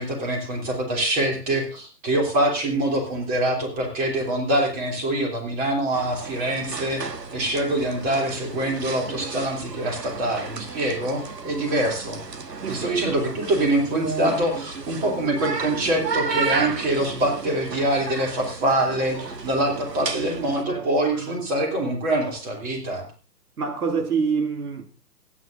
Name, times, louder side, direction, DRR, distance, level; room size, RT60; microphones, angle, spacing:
voice 1, 0.0-7.0 7.3-12.2 12.7-23.0, right 1 dB, 20° right, 3.0 m, -24 dB
sound 1, 5.9-20.6, right 4 dB, 90° right, 1.5 m, -33 dB
voice 2, 12.6-13.3 20.5-21.4 23.6-24.9, right 5 dB, 70° right, 1.8 m, -28 dB
26.0 x 9.8 x 2.6 m
hypercardioid pair, 145°, 47 cm